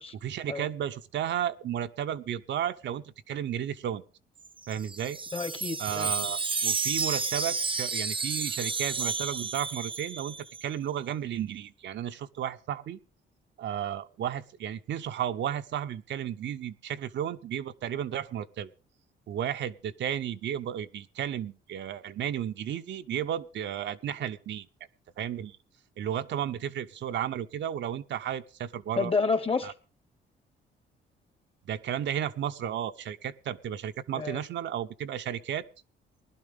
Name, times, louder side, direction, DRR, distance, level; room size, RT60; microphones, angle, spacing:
voice 1, 0.2-4.0 4.7-5.2 5.8-13.0 13.6-18.7 19.3-24.7 25.2-25.6 26.0-29.1 29.6-29.7 31.7-35.7, right 10 dB, 65° right, 9 dB, 0.7 m, -33 dB
Wind chime, 4.4-10.7, right 4 dB, 25° right, 0.7 m, -31 dB
voice 2, 5.3-6.1 29.0-29.7 34.1-34.4, left 4 dB, 30° left, 11 dB, 1.3 m, -29 dB
20.0 x 11.5 x 3.5 m, 0.35 s
cardioid pair, 90°, 20 cm